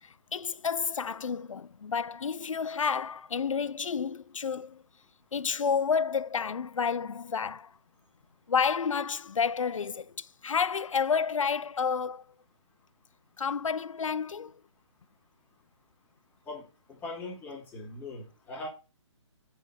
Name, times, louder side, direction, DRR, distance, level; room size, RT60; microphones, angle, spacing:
voice 1, 0.0-4.8 5.3-7.7 8.5-12.2 13.4-14.6, left 6 dB, 90° left, 0.4 m, -30 dB
voice 2, 16.5-18.7, left 2 dB, 10° left, 2.5 m, -41 dB
6.1 x 4.7 x 3.7 m
figure-of-eight pair, 140°, 16 cm